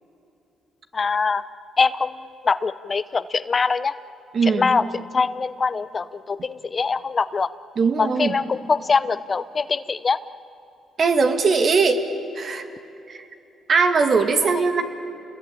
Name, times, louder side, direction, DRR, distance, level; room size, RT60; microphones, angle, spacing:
voice 1, 0.9-1.4 1.8-2.1 2.4-3.9 4.6-4.8 5.1-7.5 8.0-10.2, left 4 dB, 35° left, 14 dB, 0.7 m, -23 dB
voice 2, 4.3-4.7 7.8-8.4 11.0-12.0 12.3-12.6 13.1-13.3 13.7-14.8, right 4 dB, 50° right, 6 dB, 2.4 m, -20 dB
29.0 x 21.5 x 8.9 m, 2.8 s
cardioid pair, 90°, 0 cm